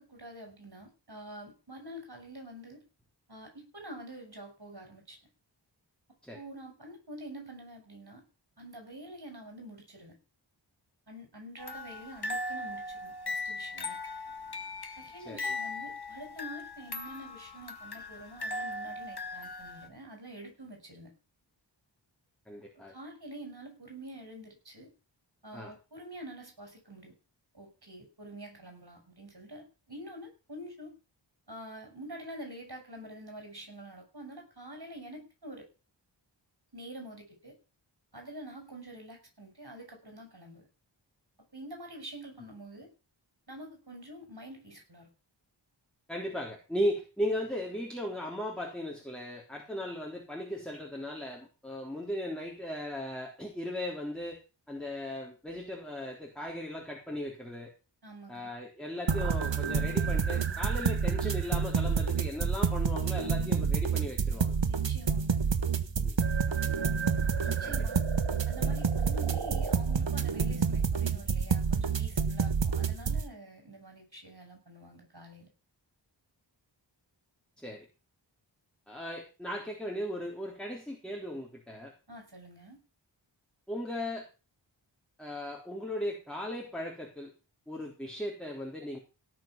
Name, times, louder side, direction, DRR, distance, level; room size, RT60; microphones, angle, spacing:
voice 1, 0.0-2.8 3.3-5.2 6.3-8.2 8.6-10.2 11.1-14.0 15.0-21.1 22.9-24.9 25.4-27.1 27.5-30.9 31.5-35.7 36.7-37.6 38.1-40.7 41.5-42.9 43.5-45.1 58.0-58.5 64.6-65.5 67.4-68.0 68.5-75.5 82.1-82.8, right 1 dB, 55° right, 3 dB, 6.3 m, -47 dB
sound 1, 11.6-19.9, left 2 dB, 55° left, 2.0 m, -39 dB
voice 2, 15.2-15.5 22.5-22.9 25.5-25.7 46.1-54.4 54.7-57.7 58.3-64.6 66.0-66.2 67.6-67.7 68.6-68.7 77.6-77.9 78.9-81.9 83.7-84.3 85.2-87.3 87.7-89.0, left 1 dB, ahead, -1 dB, 3.6 m, -37 dB
sound 2, 59.1-73.2, right 6 dB, 75° right, 1.3 m, -28 dB
17.5 x 6.5 x 5.9 m, 0.32 s
wide cardioid pair, 55°, 45 cm